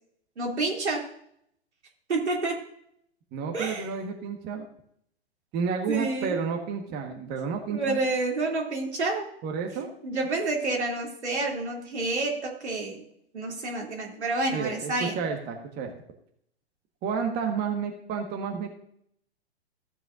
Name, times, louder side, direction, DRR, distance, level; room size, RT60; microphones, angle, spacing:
voice 1, 0.4-1.1 2.1-2.6 3.5-3.9 5.9-6.4 7.7-9.3 10.0-13.0 13.3-15.2, right 2 dB, 85° right, 0 dB, 3.0 m, -29 dB
voice 2, 3.3-4.7 5.5-8.0 9.4-9.9 14.5-15.9 17.0-18.7, right 6 dB, 30° right, 3 dB, 1.5 m, -31 dB
14.5 x 7.9 x 2.6 m, 0.69 s
hypercardioid pair, 120°, 33 cm